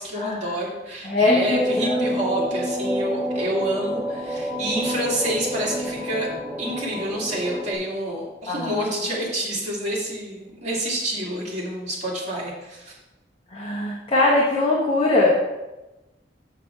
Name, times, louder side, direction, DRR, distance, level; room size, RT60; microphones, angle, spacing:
voice 1, 0.0-6.3 6.6-12.9, right 1 dB, 40° right, -5 dB, 2.5 m, -28 dB
voice 2, 1.0-2.0 2.3-2.4 8.5-8.7 13.5-15.4, left 2 dB, 35° left, -4 dB, 1.2 m, -21 dB
sound 1, 1.3-7.7, equal, 10° right, 1.3 m, -28 dB
7.1 x 5.9 x 4.6 m, 1.0 s
head